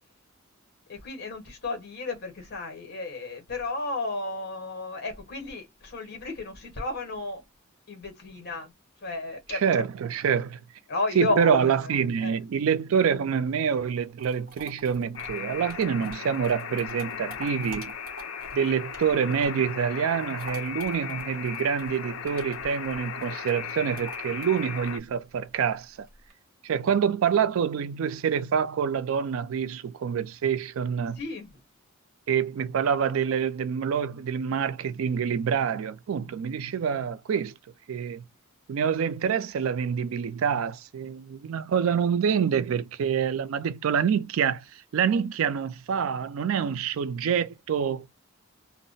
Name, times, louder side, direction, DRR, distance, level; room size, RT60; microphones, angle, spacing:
voice 1, 0.9-7.4 7.9-8.7 9.0-9.8 10.9-11.6 12.2-12.4 31.2-31.5, left 2 dB, 50° left, 1.0 m, -33 dB
voice 2, 9.5-10.6 11.1-17.9 18.5-26.1 26.6-31.2 32.3-37.5 37.9-38.2 38.7-48.1, right 7 dB, 65° right, 0.3 m, -26 dB
sound 1, 13.9-19.7 20.0-26.3, right 1 dB, 45° right, 0.8 m, -47 dB
Alarm, 15.2-25.0, left 7 dB, 65° left, 0.4 m, -37 dB
2.1 x 2.0 x 3.8 m
head